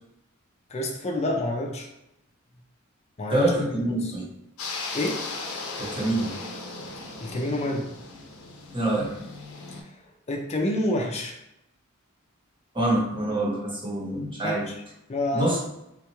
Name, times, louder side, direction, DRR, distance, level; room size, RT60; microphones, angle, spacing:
voice 1, 0.7-1.9 3.2-3.5 3.9-4.0 4.9-5.2 7.2-7.9 10.3-11.3 14.4-14.8 15.1-15.6, left 1 dB, 30° left, 1 dB, 0.4 m, -28 dB
voice 2, 3.3-4.3 5.8-6.3 8.7-9.1 12.7-14.7 15.3-15.6, right 1 dB, 25° right, -3 dB, 0.9 m, -25 dB
sound 1, 4.6-9.8, left 3 dB, 85° left, 0.6 m, -37 dB
3.7 x 2.3 x 2.9 m, 0.85 s
head